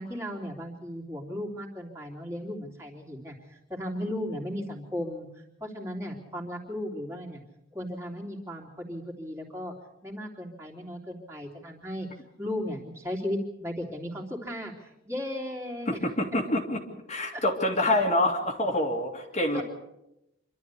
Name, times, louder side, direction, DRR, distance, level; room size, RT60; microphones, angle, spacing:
voice 1, 0.0-7.4 7.7-9.7 10.0-12.1 12.4-16.1 17.3-17.4 19.5-19.6, left 1 dB, 15° right, -2 dB, 3.3 m, -36 dB
voice 2, 15.9-16.8 17.1-19.6, left 1 dB, 35° left, 1 dB, 2.2 m, -26 dB
27.0 x 12.5 x 8.4 m, 0.88 s
head